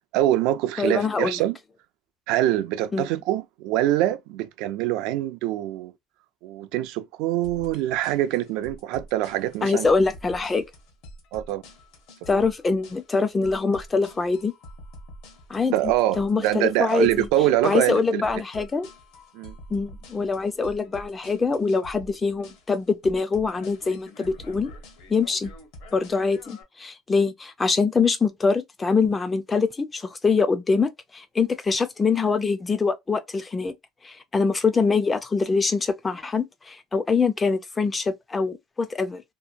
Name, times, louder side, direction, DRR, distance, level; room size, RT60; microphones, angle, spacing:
voice 1, 0.1-1.6 2.3-5.9 6.4-9.9 11.3-11.6 15.7-18.2 19.3-19.6, right 14 dB, 70° right, 0.3 m, -24 dB
voice 2, 0.8-1.4 2.9-3.1 9.6-10.6 12.3-14.5 15.5-17.3 17.6-18.9 19.7-24.7 25.1-25.5 25.9-33.7 34.0-39.2, left 4 dB, 15° left, 0.3 m, -24 dB
sound 1, 7.4-26.6, equal, 75° left, 0.9 m, -46 dB
2.8 x 2.1 x 2.5 m
cardioid pair, 140°, 0 cm